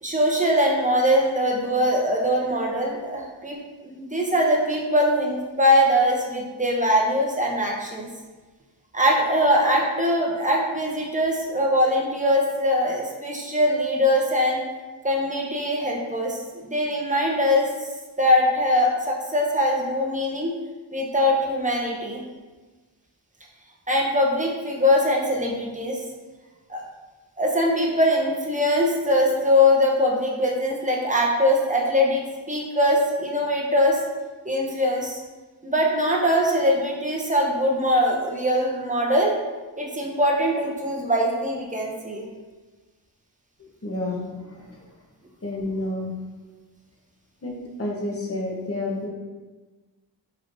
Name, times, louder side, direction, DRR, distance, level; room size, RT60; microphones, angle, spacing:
voice 1, 0.0-3.6 3.8-8.1 8.9-14.6 15.0-17.7 18.2-20.5 20.9-22.2 23.9-26.0 26.7-26.8 27.4-34.0 34.4-35.2 35.6-39.3 39.8-42.3, equal, 15° right, -2 dB, 0.7 m, -22 dB
voice 2, 43.8-44.8 45.4-46.1 47.4-49.1, left 2 dB, 30° left, -1 dB, 0.8 m, -30 dB
4.8 x 3.1 x 2.5 m, 1.3 s
wide cardioid pair, 80°, 46 cm